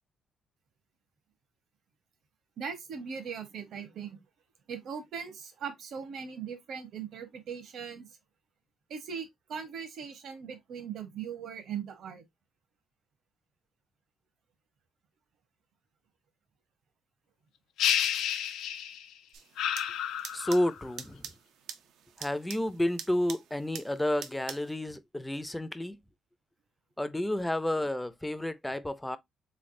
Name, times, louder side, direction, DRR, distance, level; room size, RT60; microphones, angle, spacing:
voice 1, 2.6-4.2 4.7-8.1 8.9-12.2 27.7-27.9, right 7 dB, 70° right, 0.9 m, -39 dB
sound 1, 17.8-19.1 19.6-20.8, left 9 dB, 85° left, 0.4 m, -30 dB
sound 2, 19.3-24.7, right 8 dB, 85° right, 0.5 m, -46 dB
voice 2, 20.3-21.2 22.2-26.0 27.0-29.2, left 1 dB, 10° left, 0.4 m, -31 dB
3.4 x 3.2 x 2.5 m
cardioid pair, 90°, 0 cm